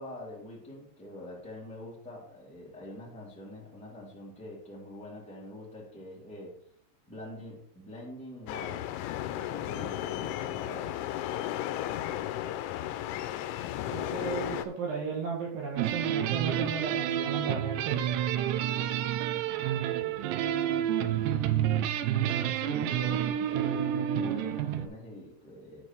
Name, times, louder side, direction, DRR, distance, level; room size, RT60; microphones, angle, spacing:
voice 1, 0.0-6.5 7.1-8.8 9.3-11.0 19.1-21.4 22.0-25.8, left 1 dB, ahead, -6 dB, 2.1 m, -45 dB
sound 1, 8.5-14.7, left 12 dB, 85° left, 3.0 m, -34 dB
voice 2, 13.9-18.0, right 5 dB, 65° right, 0 dB, 2.5 m, -34 dB
sound 2, 15.8-24.9, right 10 dB, 90° right, 2.5 m, -29 dB
9.8 x 5.1 x 4.6 m, 0.65 s
omnidirectional pair, 5.6 m